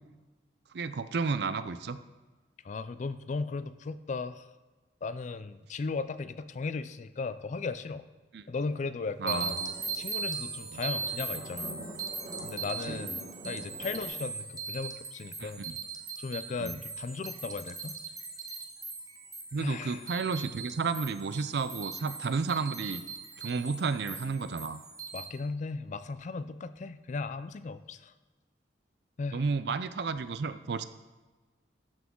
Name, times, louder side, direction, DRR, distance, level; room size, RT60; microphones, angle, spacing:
voice 1, 0.7-2.0 8.3-8.4 9.2-9.7 12.9-13.0 15.4-15.8 16.6-16.8 19.5-23.0 23.4-24.8 29.3-30.8, right 4 dB, 65° right, 12 dB, 0.5 m, -32 dB
voice 2, 2.6-4.5 5.0-8.0 8.5-9.6 9.9-11.8 12.4-13.2 13.4-15.6 16.2-18.0 19.6-20.0 25.1-28.1 29.2-29.4, left 4 dB, 40° left, 14 dB, 0.4 m, -36 dB
sound 1, 9.0-14.1, equal, 45° right, 2.1 m, -46 dB
sound 2, 9.3-25.2, right 4 dB, 20° right, 0.8 m, -39 dB
12.5 x 6.1 x 3.7 m, 1.3 s
head